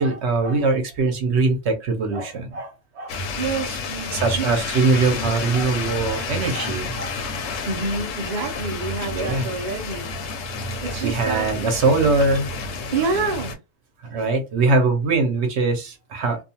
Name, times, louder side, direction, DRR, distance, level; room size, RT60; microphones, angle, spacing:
voice 1, 0.0-3.1 4.1-7.5 9.1-9.5 11.0-12.5 14.0-16.4, right 3 dB, 60° right, 0.8 m, -22 dB
sound 1, 3.1-13.5, left 3 dB, 65° left, 0.8 m, -30 dB
voice 2, 3.4-4.5 7.7-10.1 10.8-11.5 12.9-13.6, right 4 dB, 75° right, 0.4 m, -27 dB
2.5 x 2.3 x 2.7 m
omnidirectional pair, 1.6 m